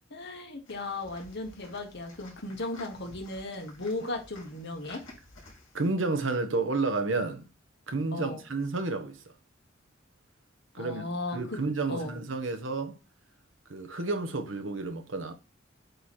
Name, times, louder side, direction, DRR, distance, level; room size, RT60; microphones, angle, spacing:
voice 1, 0.1-5.0 8.1-8.4 10.8-11.6 11.9-12.1, left 2 dB, 60° left, 1.5 m, -36 dB
sound 1, 0.7-5.9, left 2 dB, 75° left, 3.5 m, -52 dB
voice 2, 5.7-7.5 7.9-9.2 10.7-13.0 13.7-15.3, right 3 dB, 70° right, 1.0 m, -31 dB
8.0 x 3.1 x 4.2 m
head